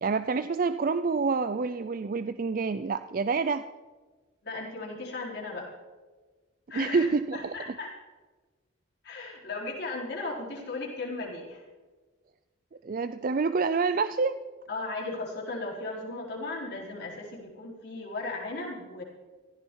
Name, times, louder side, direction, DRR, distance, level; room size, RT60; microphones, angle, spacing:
voice 1, 0.0-3.7 6.8-7.5 12.8-14.4, right 4 dB, 45° right, 12 dB, 0.4 m, -27 dB
voice 2, 4.4-5.7 6.7-7.1 7.3-7.9 9.0-11.6 14.7-19.0, left 3 dB, 55° left, -3 dB, 4.5 m, -36 dB
16.0 x 15.0 x 4.6 m, 1.3 s
head